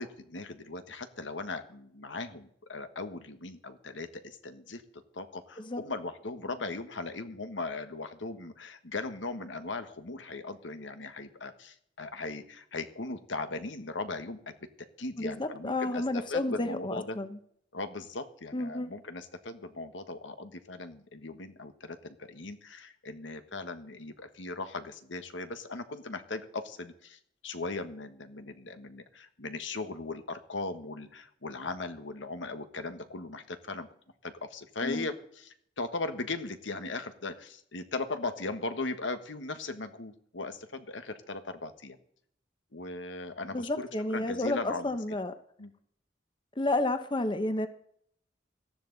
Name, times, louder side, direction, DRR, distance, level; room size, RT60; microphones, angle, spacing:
voice 1, 0.0-4.8 5.1-14.6 15.0-17.2 17.7-33.9 34.2-42.0 42.7-45.0 45.6-45.7, left 3 dB, 85° left, 9 dB, 1.4 m, -38 dB
voice 2, 15.2-17.4 18.5-18.9 34.8-35.1 43.5-45.3 46.6-47.7, left 2 dB, 25° left, 10 dB, 0.8 m, -31 dB
18.0 x 13.0 x 4.0 m, 0.66 s
head